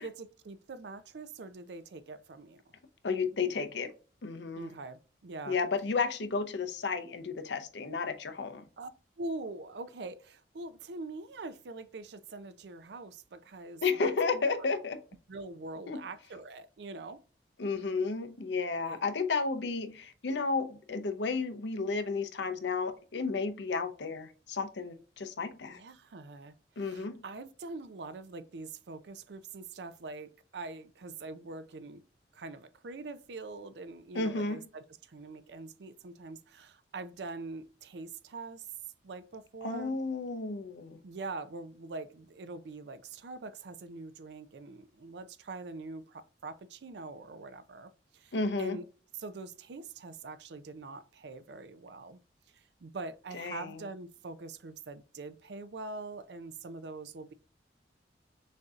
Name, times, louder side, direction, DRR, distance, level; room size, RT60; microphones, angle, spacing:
voice 1, 0.0-2.6 4.6-5.6 8.8-8.9 9.2-14.6 15.3-17.2 18.8-19.0 25.7-32.0 32.3-38.7 39.0-40.0 41.0-48.9 49.2-52.2 52.8-57.3, right 3 dB, 70° right, 0.5 m, -44 dB
voice 2, 3.0-3.9 4.2-4.7 5.5-8.7 13.8-15.0 15.9-16.0 17.6-25.8 26.8-27.2 34.1-34.6 39.6-41.0 48.3-48.8 53.3-53.8, left 4 dB, 80° left, 0.6 m, -32 dB
6.4 x 2.7 x 2.4 m
head